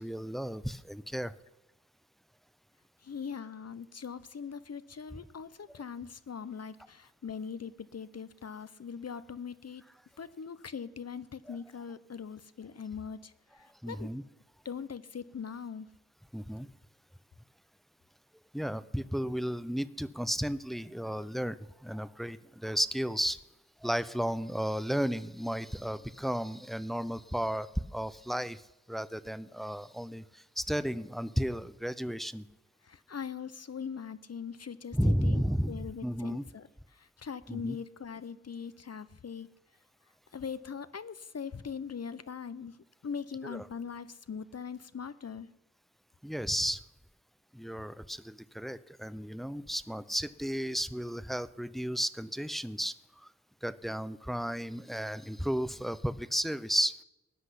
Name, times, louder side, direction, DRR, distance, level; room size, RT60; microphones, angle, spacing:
voice 1, 0.0-1.4 11.5-11.6 13.8-14.2 16.3-16.7 18.5-23.4 23.8-28.6 28.9-32.4 34.9-36.4 37.5-37.8 43.4-43.7 46.2-46.8 47.5-52.9 53.6-57.0, equal, ahead, 15 dB, 0.5 m, -33 dB
voice 2, 3.0-9.8 10.2-14.1 14.6-15.9 32.8-35.4 35.7-39.5 40.3-42.8 43.0-45.5, left 6 dB, 55° left, 15 dB, 0.6 m, -41 dB
17.0 x 6.0 x 9.9 m, 0.99 s
wide cardioid pair, 70°, 31 cm